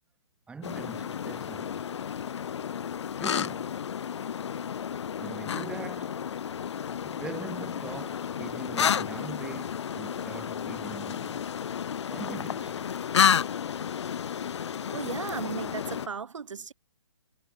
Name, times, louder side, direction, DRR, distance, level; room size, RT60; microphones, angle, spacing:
voice 1, 0.5-1.8 3.1-3.8 5.2-6.2 7.0-11.4 12.1-12.9, right 5 dB, 5° right, 3.9 m, -42 dB
sound 1, 0.6-16.1, left 8 dB, 60° left, 1.1 m, -31 dB
sound 2, 7.4-15.8, left 11 dB, 15° left, 7.9 m, -61 dB
voice 2, 14.9-16.7, right 6 dB, 75° right, 5.9 m, -36 dB
hypercardioid pair, 155°, 16 cm